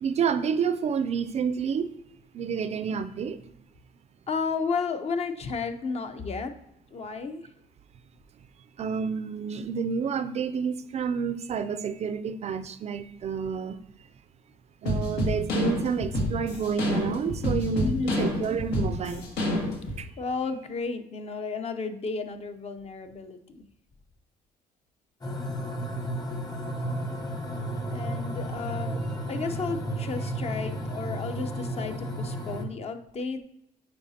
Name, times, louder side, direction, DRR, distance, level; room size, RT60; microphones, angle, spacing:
voice 1, 0.0-1.9 2.3-3.4 8.8-13.8 14.8-19.3 20.0-20.1, right 6 dB, 40° right, 12 dB, 0.4 m, -29 dB
voice 2, 4.3-6.5 6.9-7.4 17.8-18.3 20.2-23.6 27.9-29.0 29.3-33.4, left 4 dB, 40° left, 8 dB, 0.6 m, -32 dB
sound 1, 14.8-20.0, left 1 dB, 90° left, 1.6 m, -28 dB
sound 2, 25.2-32.6, right 1 dB, 25° left, 1.0 m, -33 dB
8.7 x 4.9 x 2.8 m, 0.77 s
cardioid pair, 110°, 17 cm